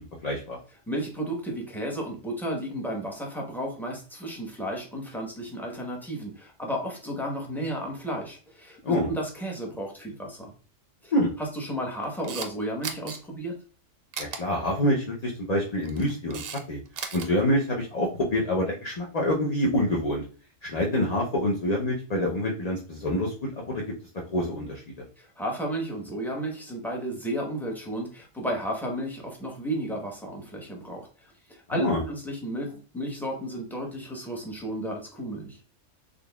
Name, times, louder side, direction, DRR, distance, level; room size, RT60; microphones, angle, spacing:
voice 1, 0.2-0.6 8.8-9.1 11.1-11.3 14.2-16.4 16.7-16.8 17.1-20.2 20.6-23.8 24.3-24.8 31.7-32.0, left 1 dB, 45° left, -2 dB, 0.6 m, -26 dB
voice 2, 0.9-10.5 11.0-11.1 11.5-13.6 25.2-35.6, right 1 dB, ahead, -1 dB, 0.7 m, -33 dB
Camera, 12.0-12.5 12.8-13.2 14.1-14.4 15.7-16.6 16.9-17.3, right 6 dB, 60° right, 0.7 m, -35 dB
3.8 x 3.3 x 2.2 m, 0.39 s
omnidirectional pair, 1.3 m